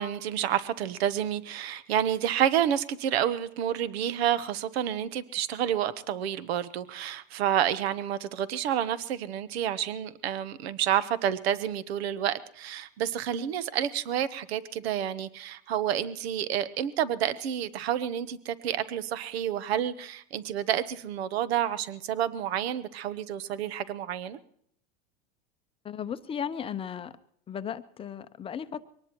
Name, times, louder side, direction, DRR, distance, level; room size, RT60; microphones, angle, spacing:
voice 1, 0.0-24.4, right 10 dB, 80° right, 15 dB, 1.0 m, -29 dB
voice 2, 25.8-27.1 27.5-28.8, left 8 dB, 20° left, 11 dB, 0.6 m, -35 dB
23.5 x 19.0 x 3.0 m, 0.66 s
supercardioid pair, 130°, 31 cm